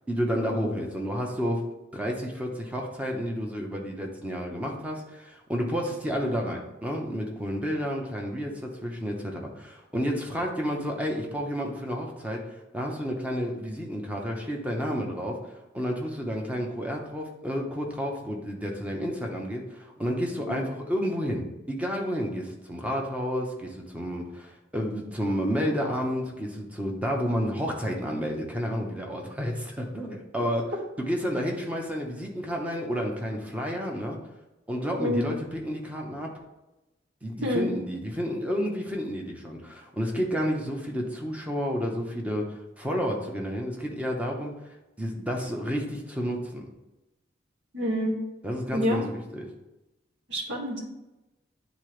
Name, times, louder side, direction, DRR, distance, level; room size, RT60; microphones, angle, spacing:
voice 1, 0.1-1.7 1.9-15.4 15.7-30.7 31.0-34.2 34.7-36.3 37.2-44.5 45.0-46.6 48.4-49.5, equal, 10° right, 0 dB, 0.9 m, -30 dB
voice 2, 47.7-48.1 48.7-49.1 50.3-50.8, left 1 dB, 70° right, -7 dB, 2.1 m, -27 dB
9.7 x 3.8 x 3.2 m, 1.0 s
head